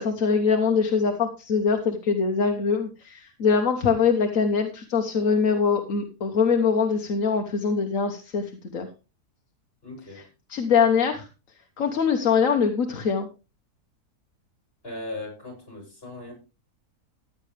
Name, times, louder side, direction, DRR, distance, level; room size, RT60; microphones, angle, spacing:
voice 1, 0.0-8.9 10.5-11.3 11.8-13.3, left 5 dB, 60° left, 4 dB, 1.5 m, -23 dB
voice 2, 9.8-10.2 14.8-16.3, left 2 dB, 35° left, 1 dB, 7.2 m, -38 dB
15.0 x 9.5 x 3.3 m, 0.30 s
omnidirectional pair, 1.7 m